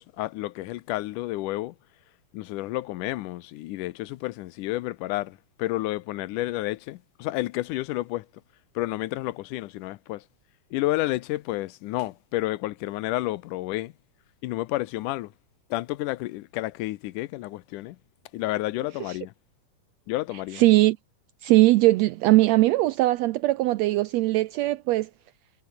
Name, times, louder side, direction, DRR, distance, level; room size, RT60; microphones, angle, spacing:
voice 1, 0.0-1.8 2.3-8.3 8.8-10.2 10.7-13.9 14.4-15.3 15.7-18.0 18.3-19.3 20.1-20.6, left 17 dB, 90° left, 2.3 m, -30 dB
voice 2, 20.5-21.0 21.4-25.1, right 17 dB, 85° right, 1.5 m, -20 dB
omnidirectional pair, 3.6 m